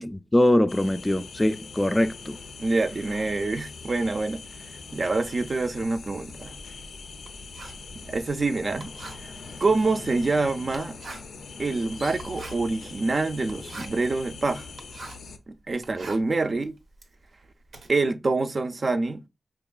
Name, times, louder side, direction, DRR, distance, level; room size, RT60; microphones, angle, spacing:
voice 1, 0.1-2.4, left 1 dB, 20° left, 0.3 m, -22 dB
sound 1, 0.7-15.4, left 4 dB, 90° left, 0.4 m, -42 dB
voice 2, 2.6-4.4 4.9-6.6 8.1-8.9 9.2-9.3 9.6-11.0 11.6-14.7 15.5-16.7 17.9-19.2, right 3 dB, 55° right, 0.4 m, -26 dB
Writing, 5.1-15.4 15.7-17.9, right 3 dB, 80° right, 0.7 m, -45 dB
4.5 x 3.0 x 2.3 m
cardioid pair, 55°, 0 cm